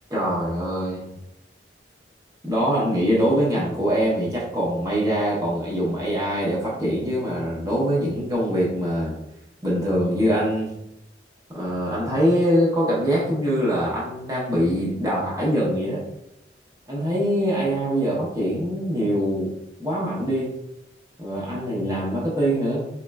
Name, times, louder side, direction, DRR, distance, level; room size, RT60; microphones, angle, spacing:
voice 1, 0.1-1.1 2.4-9.1 9.6-10.7 11.5-16.0 16.9-19.5 19.8-20.6 21.2-22.9, equal, 20° right, -5 dB, 0.7 m, -23 dB
4.3 x 3.1 x 2.2 m, 0.83 s
head